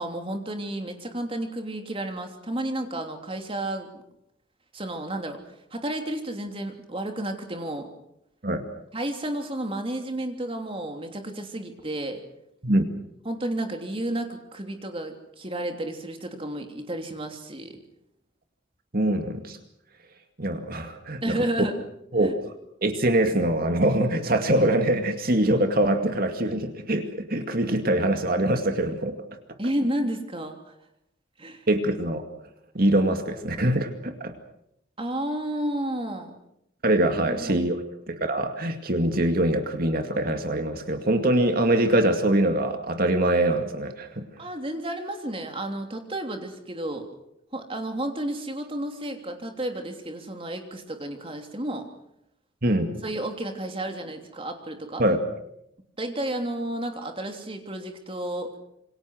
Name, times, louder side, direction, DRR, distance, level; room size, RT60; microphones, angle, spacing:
voice 1, 0.0-4.0 4.7-5.4 5.7-7.9 8.9-12.2 13.2-17.8 21.2-21.7 22.2-22.3 29.6-30.6 31.4-31.6 35.0-36.3 37.2-37.7 44.4-47.1 47.5-51.9 53.0-55.0 56.0-58.5, right 1 dB, 30° right, 5 dB, 3.1 m, -31 dB
voice 2, 18.9-19.6 20.4-21.4 22.1-22.3 22.8-29.2 31.7-32.2 32.7-34.3 36.8-44.3 52.6-52.9 55.0-55.2, right 1 dB, 50° right, 6 dB, 2.3 m, -23 dB
27.5 x 24.0 x 6.4 m, 0.79 s
head